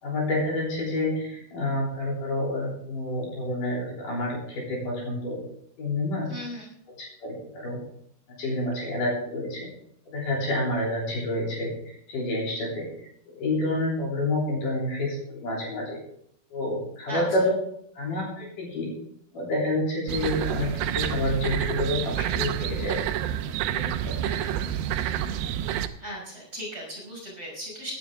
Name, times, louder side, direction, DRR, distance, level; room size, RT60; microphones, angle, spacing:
voice 1, 0.0-5.4 5.8-6.3 7.2-7.8 8.4-9.7 10.1-16.0 16.5-17.5 17.9-18.9 19.3-23.0 23.7-24.1, left 1 dB, 55° left, -3 dB, 4.9 m, -28 dB
voice 2, 6.3-6.6 17.1-17.2 24.2-24.6 26.0-27.9, equal, 20° right, -1 dB, 5.5 m, -37 dB
sound 1, 20.1-25.9, right 10 dB, 80° right, 2.6 m, -28 dB
17.0 x 10.5 x 3.7 m, 0.70 s
omnidirectional pair, 4.5 m